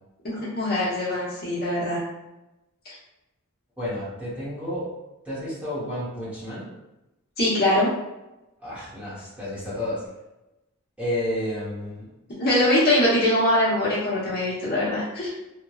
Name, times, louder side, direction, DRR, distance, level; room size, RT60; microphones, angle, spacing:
voice 1, 0.2-2.0 7.4-7.9 12.4-15.3, left 1 dB, 45° left, -8 dB, 0.9 m, -22 dB
voice 2, 3.8-4.9 5.2-6.7 8.6-10.0 11.0-12.4, left 1 dB, 5° right, -10 dB, 0.9 m, -31 dB
2.9 x 2.2 x 2.3 m, 0.96 s
head